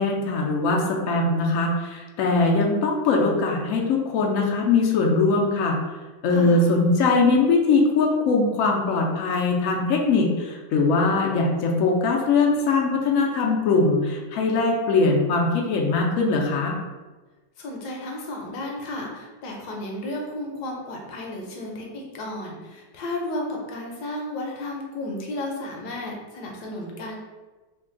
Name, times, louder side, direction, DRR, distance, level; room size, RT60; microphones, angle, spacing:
voice 1, 0.0-5.8 6.2-16.8, left 3 dB, 85° left, 0 dB, 0.7 m, -21 dB
voice 2, 6.3-6.7 17.6-27.2, left 1 dB, 70° left, 0 dB, 1.1 m, -33 dB
3.3 x 2.2 x 3.7 m, 1.2 s
omnidirectional pair, 2.1 m